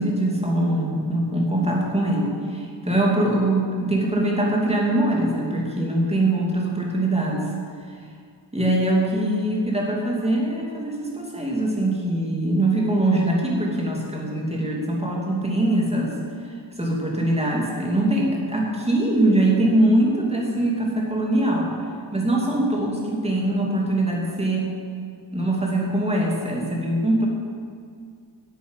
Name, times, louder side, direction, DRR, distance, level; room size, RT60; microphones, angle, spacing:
voice 1, 0.0-7.4 8.5-16.1 16.8-21.7 22.1-24.7 25.3-27.3, right 1 dB, 15° right, -2 dB, 2.7 m, -22 dB
11.5 x 8.0 x 8.2 m, 2.2 s
wide cardioid pair, 125°, 45 cm